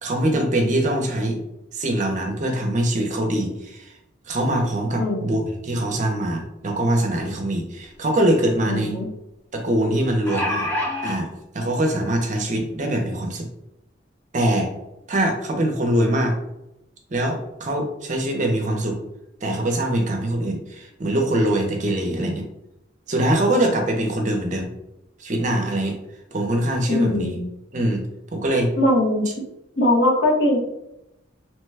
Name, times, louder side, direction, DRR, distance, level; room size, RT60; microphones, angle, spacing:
voice 1, 0.0-1.4 1.7-3.9 4.3-9.0 9.5-10.7 11.0-11.3 11.5-13.5 14.3-14.7 15.1-16.3 17.1-19.0 19.4-22.5 23.1-24.7 25.2-26.0 26.3-27.4 27.7-28.1 28.3-28.7, right 1 dB, 40° right, 2 dB, 0.5 m, -23 dB
voice 2, 5.0-5.4 8.7-9.1 26.9-27.5 28.8-29.3 29.8-30.6, left 1 dB, 65° left, -3 dB, 0.8 m, -20 dB
sound 1, 7.8-7.9 8.3-8.4 9.9-11.2 12.1-12.2 12.6-12.7, left 1 dB, 10° left, 0.5 m, -26 dB
2.9 x 2.2 x 3.3 m, 0.89 s
head